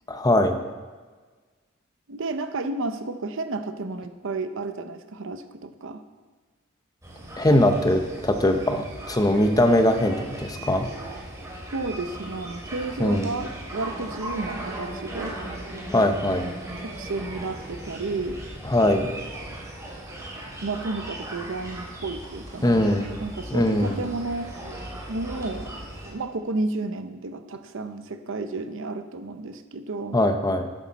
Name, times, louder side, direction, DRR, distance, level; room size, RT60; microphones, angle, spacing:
voice 1, 0.1-0.6 7.4-10.9 13.0-13.3 15.9-16.4 18.7-19.1 22.6-23.1 23.5-24.0 30.1-30.7, left 1 dB, 20° left, 6 dB, 0.8 m, -21 dB
voice 2, 2.1-6.0 11.7-15.3 16.8-18.4 20.6-22.8 23.2-24.5 25.1-25.7 26.1-30.2, right 3 dB, 65° right, 9 dB, 0.7 m, -32 dB
sound 1, 7.0-26.1, right 1 dB, 15° right, 2.7 m, -38 dB
12.0 x 11.0 x 4.2 m, 1.4 s
head